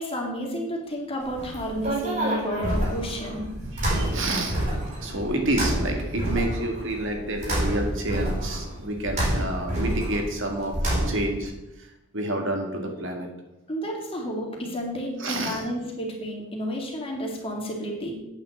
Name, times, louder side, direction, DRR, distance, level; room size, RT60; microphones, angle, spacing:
voice 1, 0.0-3.5 13.7-18.1, equal, 25° left, 0 dB, 2.4 m, -31 dB
sound 1, 1.2-11.4, right 1 dB, 35° right, 4.5 m, -28 dB
voice 2, 3.7-4.6 5.0-10.8 11.1-11.5 12.1-13.3 15.2-15.6, right 1 dB, 65° right, 2 dB, 2.0 m, -29 dB
8.6 x 6.1 x 7.9 m, 0.92 s
head